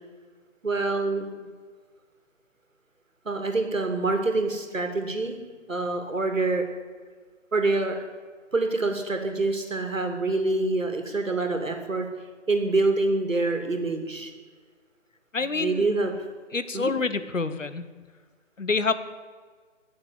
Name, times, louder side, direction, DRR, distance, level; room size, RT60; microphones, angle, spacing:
voice 1, 0.6-1.5 3.2-5.4 5.7-6.6 7.5-8.0 8.5-12.1 12.5-14.3 15.4-16.1 16.7-16.9, right 3 dB, 85° right, 5 dB, 2.8 m, -26 dB
voice 2, 15.3-15.9 16.5-17.8 18.6-18.9, left 4 dB, 80° left, 12 dB, 1.3 m, -27 dB
19.0 x 7.0 x 8.4 m, 1.5 s
figure-of-eight pair, 150°, 38 cm